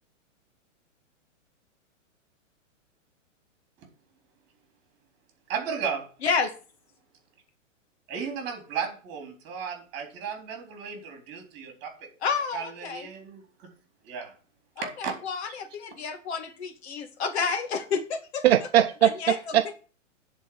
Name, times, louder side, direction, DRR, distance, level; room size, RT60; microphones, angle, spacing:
voice 1, 5.5-6.1 8.1-12.1 12.5-13.4 14.0-14.3 14.8-15.1 15.5-15.6, right 6 dB, 30° right, 4 dB, 3.9 m, -34 dB
voice 2, 6.2-6.5 12.2-13.1 14.8-18.4 19.0-19.4, left 5 dB, 55° left, 7 dB, 1.9 m, -30 dB
voice 3, 18.4-19.7, right 12 dB, 55° right, 9 dB, 0.8 m, -21 dB
10.5 x 4.5 x 7.9 m, 0.37 s
hypercardioid pair, 155°, 38 cm